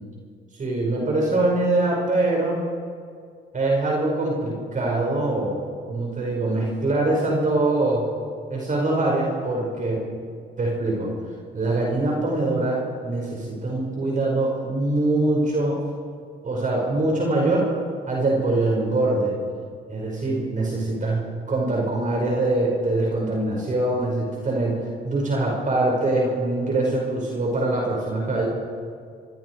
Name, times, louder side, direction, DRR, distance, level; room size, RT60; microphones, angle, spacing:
voice 1, 0.5-2.6 3.5-5.5 5.9-8.0 8.5-10.1 10.6-11.1 11.5-15.8 16.4-17.7 18.1-19.3 19.9-28.5, right 2 dB, 40° right, -2 dB, 5.8 m, -23 dB
27.5 x 22.5 x 4.9 m, 2.2 s
cardioid pair, 90°, 20 cm